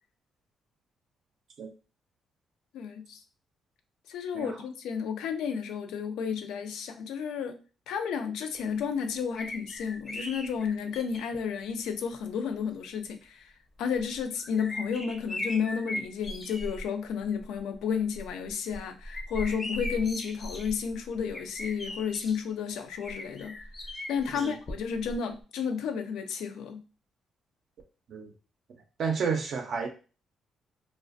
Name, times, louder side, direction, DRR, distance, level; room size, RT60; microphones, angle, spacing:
voice 1, 2.7-3.2 4.1-7.6 7.9-13.5 13.8-23.6 24.1-26.8, left 6 dB, 85° left, 7 dB, 0.4 m, -32 dB
sound 1, 9.4-11.4 12.3-12.4 13.9-16.9 17.2-17.6 18.0-22.4 23.0-25.2 25.4-25.5, left 1 dB, 30° left, 0.5 m, -39 dB
voice 2, 29.0-29.9, right 5 dB, 60° right, 3 dB, 0.4 m, -30 dB
2.4 x 2.1 x 2.4 m, 0.34 s
cardioid pair, 90°, 0 cm